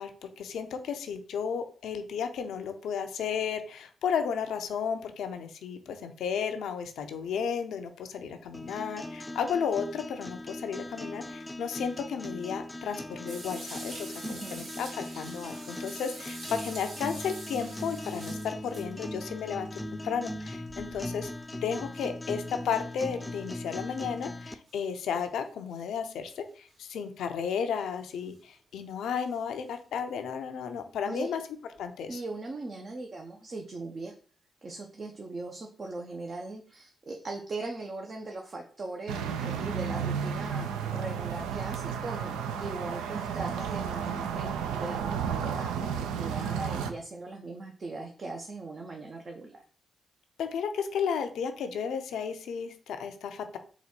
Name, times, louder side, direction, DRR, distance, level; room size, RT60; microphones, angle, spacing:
voice 1, 0.0-21.3 21.6-31.4 31.8-32.2 50.4-53.6, left 7 dB, 75° left, 7 dB, 0.5 m, -33 dB
sound 1, 8.5-24.5, left 1 dB, 20° left, 0.5 m, -39 dB
sound 2, 13.3-19.2 20.7-21.3 21.9-22.0 23.3-23.4 24.7-25.3 25.7-25.8 26.7-26.8 28.1-28.3 29.2-29.4 31.8-31.9, right 2 dB, 70° right, 2.1 m, -45 dB
voice 2, 14.2-14.7 31.1-31.3 32.1-34.1 34.6-49.6, right 2 dB, 50° right, 1 dB, 0.7 m, -39 dB
sound 3, 39.1-46.9, right 7 dB, 85° right, 0.4 m, -32 dB
4.0 x 2.3 x 4.3 m, 0.42 s
hypercardioid pair, 40°, 0 cm